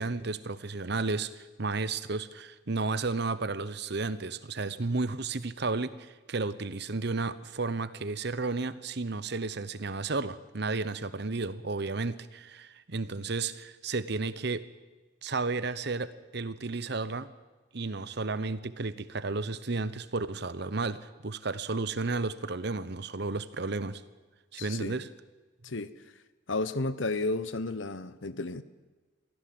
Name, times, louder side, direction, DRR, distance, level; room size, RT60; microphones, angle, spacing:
voice 1, 0.0-14.6 15.2-17.3 17.7-24.0 24.5-25.1, right 3 dB, 60° right, 15 dB, 1.0 m, -33 dB
voice 2, 24.6-25.0 25.6-25.9 26.5-28.6, left 2 dB, 75° left, 15 dB, 1.0 m, -32 dB
23.0 x 15.5 x 7.8 m, 1.3 s
head